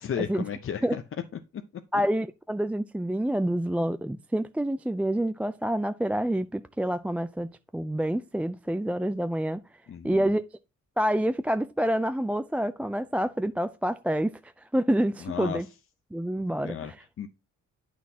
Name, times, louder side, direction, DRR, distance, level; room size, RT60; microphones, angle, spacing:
voice 1, 0.0-1.0 9.9-10.3 15.2-15.6 16.6-16.9 17.2-17.3, left 8 dB, 45° left, 0.7 m, -33 dB
voice 2, 1.9-9.6 10.0-10.4 11.0-15.7 16.1-17.0, right 1 dB, 5° right, 0.3 m, -27 dB
9.3 x 6.2 x 2.8 m
cardioid pair, 115°, 31 cm